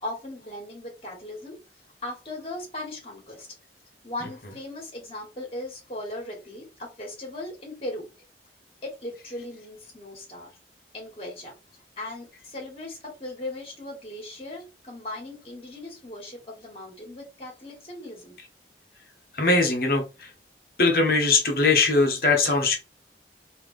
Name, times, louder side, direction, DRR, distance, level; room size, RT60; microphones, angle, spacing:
voice 1, 0.0-1.6 2.0-3.5 4.0-8.1 8.8-10.5 10.9-11.5 12.0-18.3, left 1 dB, 35° left, 1.8 m, -38 dB
voice 2, 19.4-20.3 20.8-22.8, left 3 dB, 55° left, 1.1 m, -21 dB
3.6 x 3.0 x 3.3 m
head